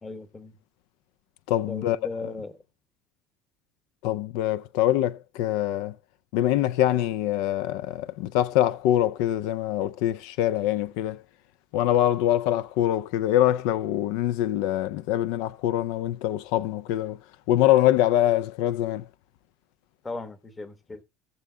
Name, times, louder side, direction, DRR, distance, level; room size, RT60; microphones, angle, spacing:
voice 1, 0.0-0.6 1.7-2.6 20.0-21.0, left 3 dB, 20° left, 1.2 m, -37 dB
voice 2, 1.5-2.0 4.0-5.9 6.3-11.2 11.7-17.2 17.5-19.0, left 13 dB, 80° left, 0.4 m, -24 dB
18.0 x 6.9 x 2.3 m
cardioid pair, 125°, 0 cm